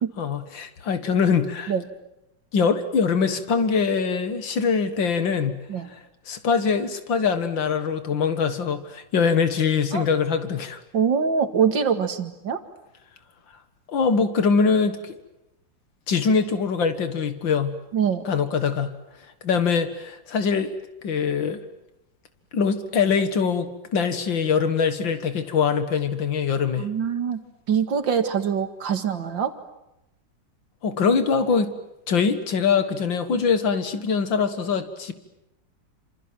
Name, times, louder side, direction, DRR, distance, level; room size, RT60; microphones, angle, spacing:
voice 1, 0.2-1.7 2.5-5.6 6.3-10.8 13.9-15.2 16.1-17.8 18.3-18.9 19.4-20.8 21.0-21.7 22.5-26.9 30.8-31.7 32.1-35.1, left 5 dB, 90° left, 10 dB, 2.4 m, -23 dB
voice 2, 10.9-12.6 17.9-18.3 26.8-27.4 27.7-29.5, right 7 dB, 80° right, 8 dB, 2.7 m, -24 dB
27.5 x 27.5 x 7.7 m, 0.88 s
omnidirectional pair, 2.0 m